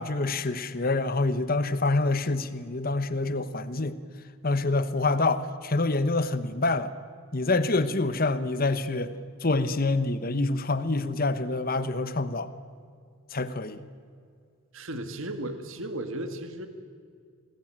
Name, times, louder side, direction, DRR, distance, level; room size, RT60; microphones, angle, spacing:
voice 1, 0.0-4.0 4.4-6.9 7.3-9.1 9.4-12.5 13.3-13.8, left 2 dB, 40° left, 13 dB, 1.1 m, -26 dB
voice 2, 14.7-16.7, right 1 dB, 65° right, 7 dB, 1.9 m, -35 dB
28.0 x 20.5 x 8.9 m, 2.2 s
head